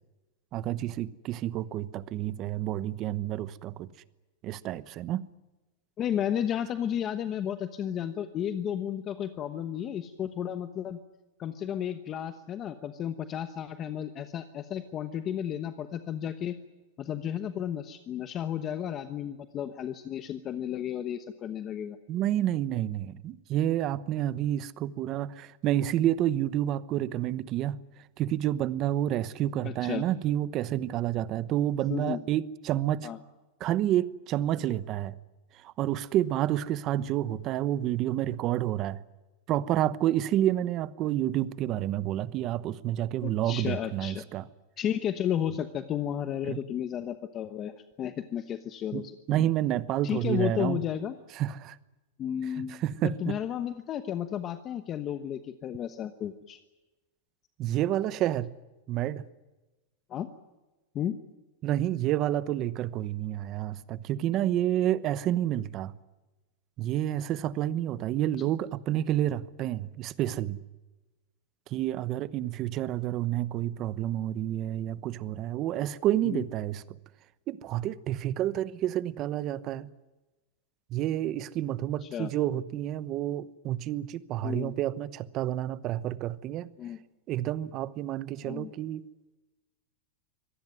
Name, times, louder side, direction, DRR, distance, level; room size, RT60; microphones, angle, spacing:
voice 1, 0.5-3.9 4.4-5.2 22.1-27.8 28.2-33.1 33.6-35.1 35.6-39.0 39.5-44.4 46.4-46.6 48.9-49.0 49.3-50.8 51.3-51.8 52.7-53.4 57.6-58.5 58.9-59.2 61.6-65.9 66.8-70.6 71.7-76.8 77.5-79.9 80.9-86.7 87.3-89.0, right 12 dB, 30° right, 1.0 m, -29 dB
voice 2, 6.0-11.0 11.4-16.6 17.0-22.0 29.6-30.1 31.9-32.2 33.0-33.2 43.2-44.2 44.8-47.7 48.0-49.2 50.0-51.1 52.2-56.6 60.1-60.3 60.9-61.2 76.2-76.4 82.0-82.3 84.4-84.7 86.8-87.0 88.4-88.7, left 9 dB, 25° left, 1.1 m, -33 dB
24.5 x 19.0 x 9.4 m
supercardioid pair, 165°, 0 cm